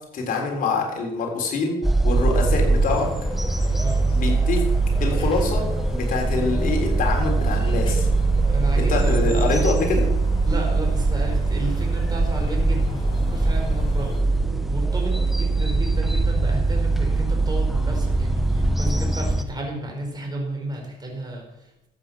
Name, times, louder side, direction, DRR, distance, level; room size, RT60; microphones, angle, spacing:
voice 1, 0.1-1.8 2.0-3.1 4.1-4.6 5.0-5.6 5.9-8.1 8.7-10.1, left 4 dB, 55° left, 1 dB, 3.7 m, -25 dB
sound 1, 1.8-19.4, right 3 dB, ahead, 0.8 m, -22 dB
sound 2, 2.1-14.2, left 3 dB, 30° left, 3.6 m, -37 dB
voice 2, 8.5-10.0 10.4-21.9, right 1 dB, 25° right, 0 dB, 4.6 m, -33 dB
14.0 x 8.6 x 6.0 m, 0.87 s
cardioid pair, 110°, 17 cm